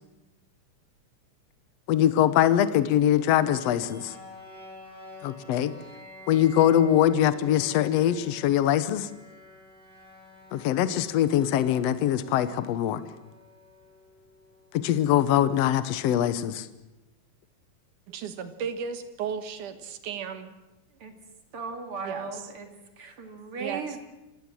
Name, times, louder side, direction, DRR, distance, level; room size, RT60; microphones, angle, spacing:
voice 1, 1.9-4.1 5.2-5.7 6.3-9.1 10.5-13.0 14.7-16.7, left 11 dB, 85° left, 13 dB, 1.4 m, -23 dB
sound 1, 1.9-15.9, left 2 dB, 15° right, 6.6 m, -50 dB
voice 2, 18.1-20.5 22.0-22.3 23.6-23.8, right 7 dB, 65° right, 9 dB, 2.7 m, -34 dB
voice 3, 21.5-22.7 23.0-24.0, right 4 dB, 40° right, 5 dB, 2.7 m, -37 dB
27.5 x 17.0 x 7.6 m, 1.0 s
omnidirectional pair, 4.3 m